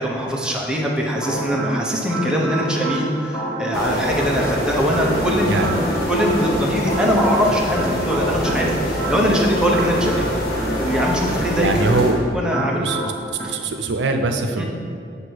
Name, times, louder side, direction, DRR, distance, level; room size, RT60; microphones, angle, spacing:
voice 1, 0.0-10.1 10.8-11.7 12.3-12.9 13.4-13.5 14.6-14.7, equal, 5° right, -2 dB, 0.8 m, -22 dB
sound 1, 1.1-13.5, right 1 dB, 15° left, 1.4 m, -29 dB
sound 2, 3.7-12.1, equal, 60° left, 1.4 m, -25 dB
voice 2, 5.5-5.8 11.5-12.2 12.8-13.1 13.5-14.7, right 3 dB, 85° right, 5 dB, 0.6 m, -22 dB
8.0 x 2.7 x 6.0 m, 2.4 s
head